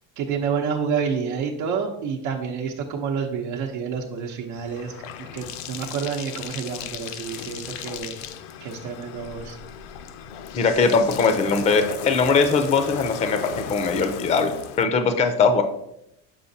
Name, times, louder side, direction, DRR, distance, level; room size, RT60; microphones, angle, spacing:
voice 1, 0.2-8.2 8.6-9.6, right 6 dB, 90° right, -1 dB, 0.8 m, -29 dB
Bathtub (filling or washing), 3.5-14.8, left 9 dB, 80° left, 0.6 m, -37 dB
voice 2, 10.5-15.6, left 4 dB, 20° left, 8 dB, 0.4 m, -21 dB
7.0 x 5.0 x 2.7 m, 0.82 s
cardioid pair, 135°, 36 cm